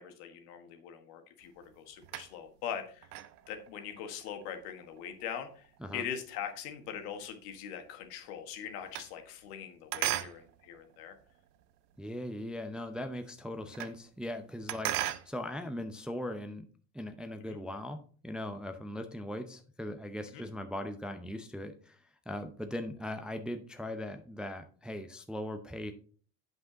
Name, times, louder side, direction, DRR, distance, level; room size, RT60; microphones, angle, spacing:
voice 1, 0.0-3.1 3.5-5.6 5.9-11.1 13.8-13.9 17.4-17.6 20.3-20.4, left 8 dB, 65° left, 7 dB, 1.5 m, -42 dB
sound 1, 1.4-2.6 3.0-7.6 7.9-9.6 9.9-12.0 12.4-12.5 12.8-12.9 13.1-14.1 14.3-15.3, right 14 dB, 70° right, 0.8 m, -39 dB
voice 2, 12.0-14.9 15.3-16.6 16.9-25.9, left 1 dB, ahead, 6 dB, 0.5 m, -39 dB
8.1 x 5.6 x 3.8 m, 0.43 s
hypercardioid pair, 85°, 48 cm